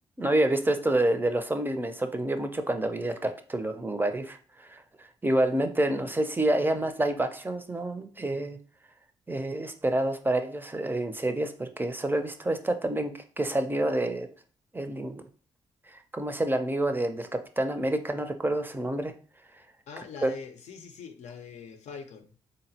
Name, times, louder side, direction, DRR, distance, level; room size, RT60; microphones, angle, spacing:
voice 1, 0.2-8.6 9.3-14.3 14.7-15.2 15.9-17.3 17.6-19.1 20.2-20.3, right 1 dB, 15° right, 7 dB, 0.4 m, -28 dB
voice 2, 19.9-22.3, left 5 dB, 70° left, 5 dB, 0.5 m, -43 dB
3.8 x 2.0 x 2.7 m, 0.41 s
supercardioid pair, 55°, 12 cm